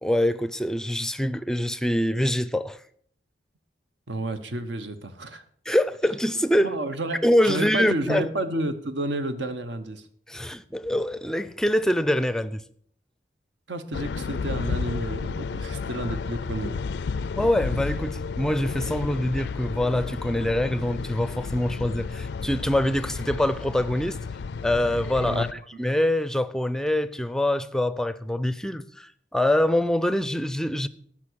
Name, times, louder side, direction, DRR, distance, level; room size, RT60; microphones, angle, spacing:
voice 1, 0.0-2.8 5.3-6.8 7.2-8.3 10.3-12.6 17.4-24.2 24.6-30.9, left 1 dB, 5° left, 0.4 m, -25 dB
voice 2, 4.1-5.4 6.6-10.0 13.7-16.8 25.2-25.4, right 1 dB, 75° right, 1.0 m, -31 dB
sound 1, 13.9-25.5, left 5 dB, 65° left, 0.4 m, -32 dB
13.0 x 6.0 x 6.3 m
head